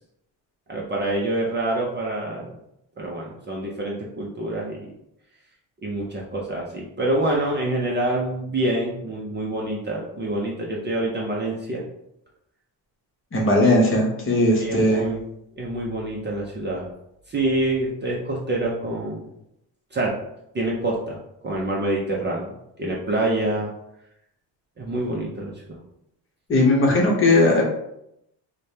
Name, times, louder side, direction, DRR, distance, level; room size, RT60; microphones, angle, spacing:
voice 1, 0.7-2.5 3.0-4.9 5.8-11.8 13.6-13.7 14.6-15.2 15.6-16.9 17.3-19.3 19.9-20.2 20.5-23.7 24.8-25.8, right 1 dB, 25° right, -3 dB, 0.5 m, -26 dB
voice 2, 13.3-15.0 26.5-27.6, left 1 dB, 30° left, -1 dB, 0.8 m, -18 dB
4.8 x 2.1 x 2.7 m, 0.79 s
cardioid pair, 150°, 41 cm